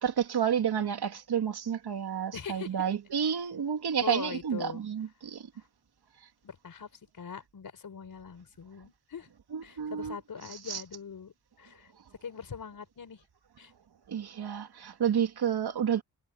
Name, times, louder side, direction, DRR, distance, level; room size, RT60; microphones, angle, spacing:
voice 1, 0.0-5.5 9.5-10.2 10.7-10.8 14.1-16.0, right 8 dB, 85° right, 2.4 m, -30 dB
voice 2, 2.3-2.8 4.0-4.8 5.5-5.6 6.4-9.3 9.6-11.9 12.2-13.2 13.6-13.7, left 6 dB, 60° left, 5.0 m, -42 dB
wide cardioid pair, 170°, 38 cm